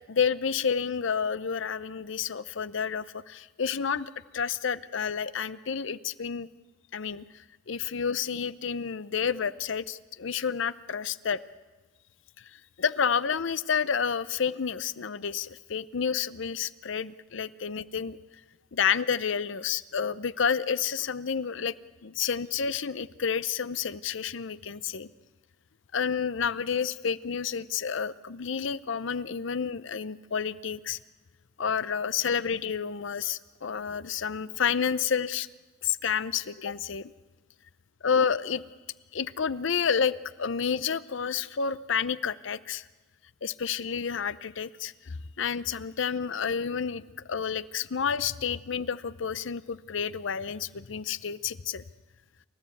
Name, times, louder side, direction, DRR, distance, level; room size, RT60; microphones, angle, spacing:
voice 1, 0.1-6.5 6.9-7.2 7.7-11.4 12.4-18.2 18.7-21.7 22.0-25.1 25.9-31.0 31.6-35.5 35.8-37.1 38.0-38.6 39.1-42.8 43.4-47.0 47.3-51.8, left 6 dB, 65° left, 16 dB, 0.6 m, -30 dB
28.5 x 14.0 x 8.4 m, 1.3 s
head